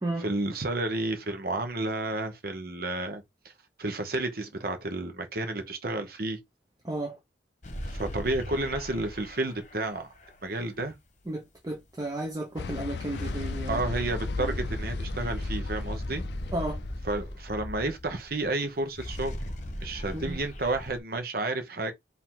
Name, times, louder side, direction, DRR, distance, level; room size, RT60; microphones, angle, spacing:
voice 1, 0.2-3.2 3.8-6.4 7.9-10.1 10.4-11.0 13.7-16.2 17.0-19.4 19.8-21.9, right 2 dB, 50° right, 1.0 m, -31 dB
voice 2, 6.8-7.2 11.3-13.8 14.4-14.6 16.5-16.8 20.1-20.4, right 1 dB, 20° right, 0.8 m, -33 dB
sound 1, 7.6-10.6 13.1-18.5 18.8-21.0, left 1 dB, 40° left, 1.1 m, -36 dB
sound 2, 12.6-17.4, left 5 dB, 60° left, 0.4 m, -39 dB
4.9 x 2.8 x 3.7 m
head